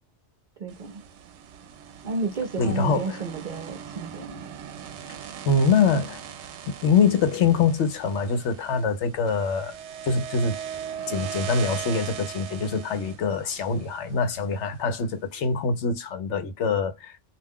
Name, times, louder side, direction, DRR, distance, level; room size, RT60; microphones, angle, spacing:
voice 1, 0.6-1.0 2.0-4.4, right 4 dB, 50° right, 0.7 m, -31 dB
sound 1, 0.7-14.9, right 8 dB, 75° right, 0.9 m, -39 dB
voice 2, 2.6-3.3 5.5-6.2 6.7-9.7 10.0-10.6 11.1-17.1, left 5 dB, 75° left, 1.0 m, -24 dB
2.5 x 2.2 x 3.5 m
omnidirectional pair, 1.2 m